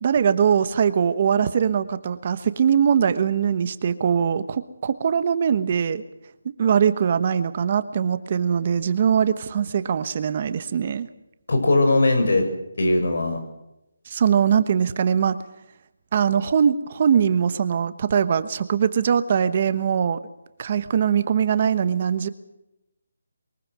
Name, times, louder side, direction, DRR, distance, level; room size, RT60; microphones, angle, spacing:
voice 1, 0.0-6.0 6.4-11.1 14.1-15.4 16.1-20.2 20.6-22.3, right 7 dB, 35° right, 12 dB, 1.1 m, -21 dB
voice 2, 11.5-12.5 12.8-13.4, left 2 dB, 65° left, 6 dB, 6.5 m, -19 dB
23.0 x 21.5 x 6.2 m, 0.88 s
hypercardioid pair, 170°, 0 cm